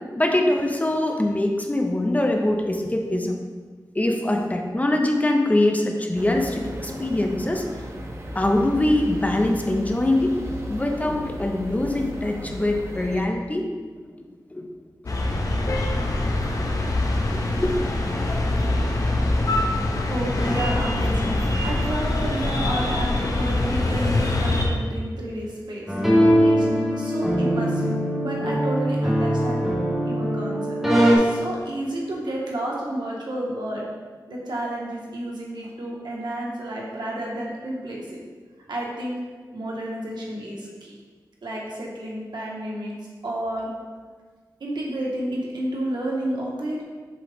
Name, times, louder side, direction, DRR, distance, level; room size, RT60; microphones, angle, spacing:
voice 1, 0.2-3.4 3.9-7.6 8.3-13.7 14.1-14.2 14.5-14.7 17.4-18.1, left 1 dB, 20° left, 2 dB, 0.6 m, -23 dB
sound 1, 6.1-13.2, equal, 35° right, 0.7 m, -35 dB
sound 2, 15.1-24.7, left 2 dB, 50° left, 0.8 m, -24 dB
voice 2, 20.0-21.4 21.6-25.9 26.6-27.9 28.2-29.6 30.1-30.8 31.1-33.8 34.3-38.2 38.7-39.1 39.5-40.9 41.4-42.9 43.2-43.7 44.6-46.8, right 1 dB, 85° right, -3 dB, 1.4 m, -31 dB
sound 3, 25.9-31.2, equal, 5° right, 1.1 m, -21 dB
7.6 x 3.8 x 3.5 m, 1.5 s
wide cardioid pair, 110°, 7 cm